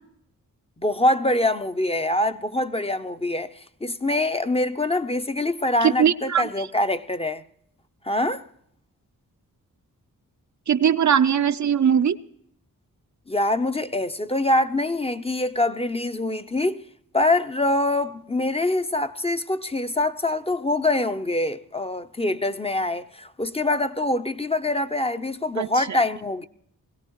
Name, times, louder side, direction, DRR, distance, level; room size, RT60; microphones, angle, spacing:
voice 1, 0.8-3.5 3.8-7.4 8.0-8.4 13.3-16.8 17.1-26.4, left 2 dB, 15° left, 0.6 m, -24 dB
voice 2, 5.8-6.7 10.7-12.1 25.6-26.0, right 8 dB, 55° right, 0.6 m, -21 dB
21.0 x 17.5 x 3.0 m
cardioid pair, 60°, 35 cm